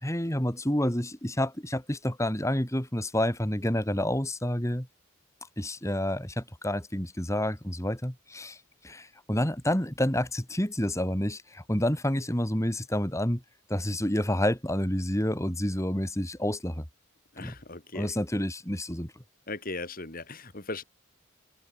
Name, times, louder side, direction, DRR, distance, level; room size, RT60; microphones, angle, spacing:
voice 1, 0.0-4.9 5.6-13.4 13.7-16.8 17.4-17.5 17.9-19.1, left 1 dB, 15° left, 3.1 m, -29 dB
voice 2, 17.3-18.2 19.5-20.8, left 3 dB, 40° left, 3.0 m, -38 dB
head